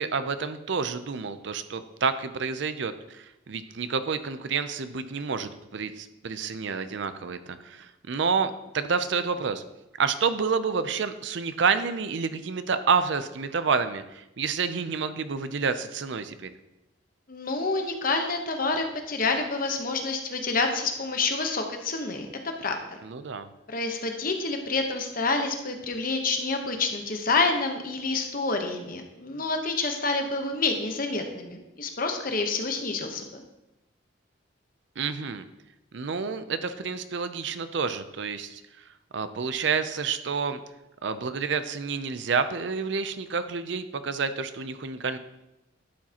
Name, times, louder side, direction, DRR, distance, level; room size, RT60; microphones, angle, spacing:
voice 1, 0.0-9.6 10.0-16.5 23.0-23.5 35.0-35.5 35.9-38.6 39.1-40.6 41.0-45.2, right 5 dB, 60° right, 11 dB, 0.5 m, -29 dB
voice 2, 17.3-23.0 23.7-33.4, left 3 dB, 45° left, 4 dB, 1.0 m, -28 dB
11.5 x 7.2 x 2.9 m, 0.94 s
head